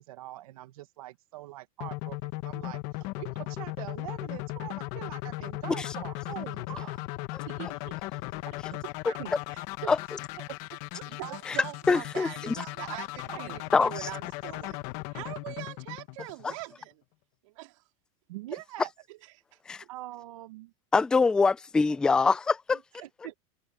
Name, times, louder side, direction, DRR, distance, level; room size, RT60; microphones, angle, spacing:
voice 1, 0.0-2.2 2.4-7.0 8.5-9.3 9.8-9.9 10.4-10.6 10.9-11.0 12.8-13.0 13.3-13.6 18.3-18.9 19.9-20.7 23.0-23.3, right 16 dB, 80° right, 1.3 m, -43 dB
sound 1, 1.8-16.7, left 20 dB, 45° left, 1.2 m, -37 dB
voice 2, 7.5-8.2 9.5-9.6 11.1-14.8 15.1-17.0 17.4-17.8 19.1-19.2 19.5-19.6, right 21 dB, 65° right, 4.0 m, -42 dB
voice 3, 11.9-12.6 13.7-14.1 16.4-16.5 19.7-19.8 20.9-22.8, left 4 dB, 5° left, 0.3 m, -24 dB
supercardioid pair, 160°, 18 cm